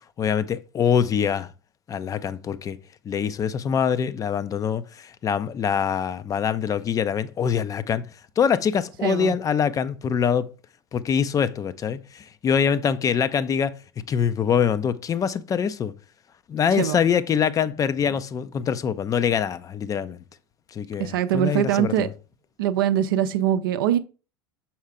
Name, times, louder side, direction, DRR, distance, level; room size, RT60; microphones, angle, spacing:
voice 1, 0.2-1.5 1.9-2.8 3.1-8.0 8.4-10.4 10.9-13.8 14.1-15.9 16.5-20.2 20.7-22.1, left 7 dB, 30° left, 0.5 m, -24 dB
voice 2, 9.0-9.4 16.8-17.0 21.0-22.1 22.6-24.0, right 11 dB, 65° right, 0.5 m, -22 dB
6.4 x 4.3 x 3.6 m
figure-of-eight pair, 70°, 12 cm